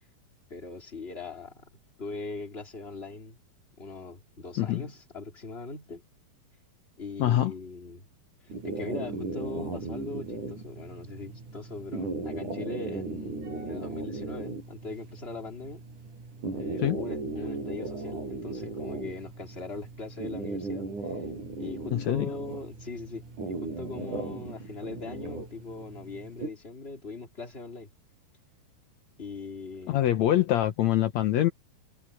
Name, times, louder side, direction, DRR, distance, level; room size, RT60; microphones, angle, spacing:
voice 1, 0.5-1.7 2.0-3.4 3.8-6.0 7.0-8.1 8.4-15.8 16.5-20.9 21.6-27.9 29.2-30.1, left 3 dB, 15° left, 2.8 m, -40 dB
voice 2, 7.2-7.5 16.8-17.0 21.9-22.3 29.9-31.5, left 12 dB, 75° left, 1.6 m, -24 dB
sound 1, 8.5-26.5, right 3 dB, 50° right, 9.0 m, -37 dB
omnidirectional pair, 4.6 m